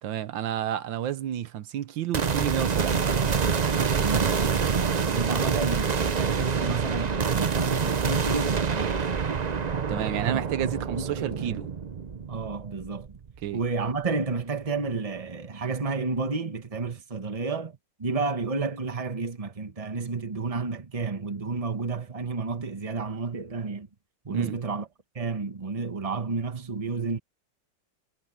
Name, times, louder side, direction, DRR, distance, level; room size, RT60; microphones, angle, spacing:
voice 1, 0.0-3.1 9.9-11.7 13.4-13.6 24.3-24.6, right 11 dB, 85° right, 1.6 m, -30 dB
sound 1, 2.1-13.5, right 6 dB, 60° right, 0.4 m, -26 dB
voice 2, 3.9-9.1 10.2-11.6 12.3-13.2 13.5-23.9 24.2-24.9 25.1-27.2, right 4 dB, 20° right, 1.3 m, -31 dB
omnidirectional pair, 2.0 m